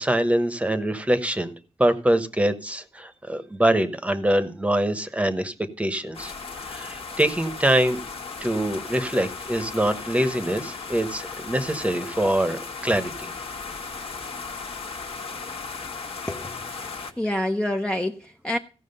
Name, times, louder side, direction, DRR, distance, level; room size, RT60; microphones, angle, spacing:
voice 1, 0.0-1.5 1.8-8.0 8.4-13.3, right 1 dB, 10° right, 1.1 m, -24 dB
sound 1, 6.1-17.1, left 4 dB, 60° left, 1.7 m, -36 dB
voice 2, 16.3-16.6 17.2-18.6, left 1 dB, 10° left, 0.7 m, -27 dB
15.5 x 6.2 x 5.4 m
wide cardioid pair, 115°, 11 cm